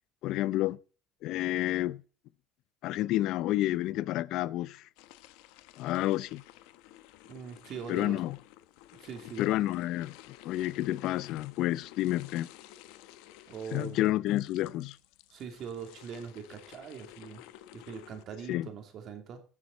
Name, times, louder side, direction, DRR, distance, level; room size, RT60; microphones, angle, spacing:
voice 1, 0.2-0.8 1.2-2.0 2.8-4.9 5.8-6.4 7.9-8.4 9.4-10.1 10.4-12.5 13.7-15.0 18.5-18.7, left 15 dB, 65° left, 0.6 m, -29 dB
sound 1, 5.0-18.2, left 14 dB, 85° left, 0.9 m, -53 dB
voice 2, 7.3-8.2 9.0-9.4 13.5-14.0 15.3-17.4 17.7-19.4, right 6 dB, 50° right, 2.7 m, -42 dB
17.0 x 7.3 x 4.1 m
cardioid pair, 130°, 0 cm